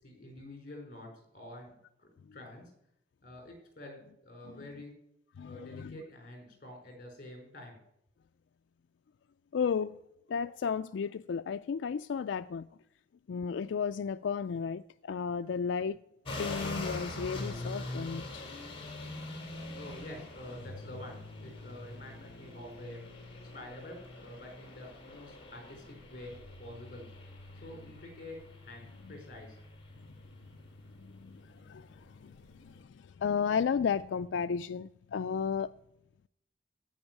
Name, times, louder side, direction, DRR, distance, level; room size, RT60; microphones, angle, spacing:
voice 1, 0.0-1.7 2.0-2.7 3.2-4.9 5.4-7.8 19.7-23.1 23.5-27.1 27.6-29.6, left 1 dB, 45° left, 4.9 m, -48 dB
voice 2, 5.4-6.0 9.5-10.0 10.3-12.7 13.3-16.0 16.4-18.5 31.0-35.7, left 6 dB, 85° left, 0.4 m, -34 dB
sound 1, 16.2-32.8, left 2 dB, 30° left, 3.2 m, -44 dB
16.0 x 5.4 x 9.3 m
head